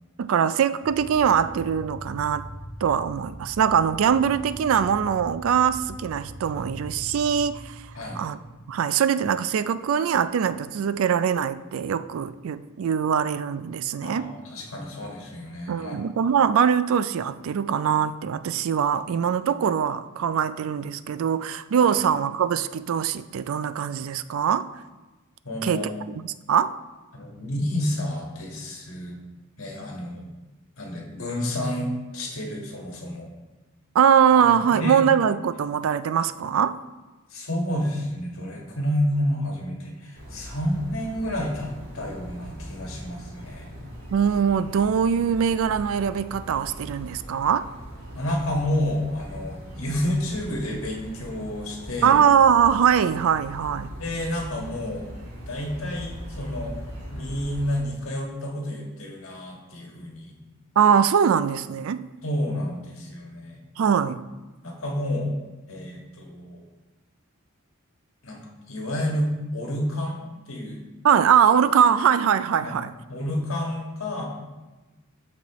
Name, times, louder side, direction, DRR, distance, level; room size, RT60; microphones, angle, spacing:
voice 1, 0.2-2.5 2.8-7.8 8.1-8.4 8.7-14.3 15.7-24.7 25.6-25.9 26.2-26.7 33.9-36.8 44.1-47.7 52.0-53.9 60.8-62.0 63.8-64.2 71.0-72.9, right 8 dB, 70° right, 0.3 m, -22 dB
sound 1, 0.8-8.8, equal, 20° left, 2.5 m, -41 dB
voice 2, 14.0-16.0 21.9-22.0 25.4-25.9 27.1-29.2 29.6-30.3 30.8-33.3 34.3-35.0 37.3-43.7 48.1-52.2 54.0-55.1 55.4-56.8 57.1-60.4 62.2-63.6 64.6-65.4 65.7-66.6 68.2-70.8 72.6-72.8 73.1-74.3, left 1 dB, 70° left, 1.5 m, -30 dB
sound 2, 40.1-57.8, equal, 90° right, 2.0 m, -40 dB
13.0 x 4.4 x 3.0 m
head